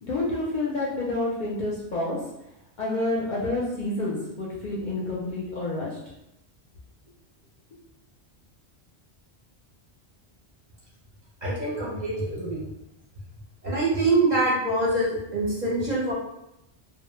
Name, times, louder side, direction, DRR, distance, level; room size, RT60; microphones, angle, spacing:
voice 1, 0.0-2.2 2.8-6.0, left 2 dB, 55° left, -5 dB, 0.5 m, -28 dB
voice 2, 11.4-12.6 13.6-16.1, right 2 dB, 50° right, -5 dB, 0.6 m, -25 dB
2.1 x 2.0 x 3.0 m, 0.85 s
omnidirectional pair, 1.1 m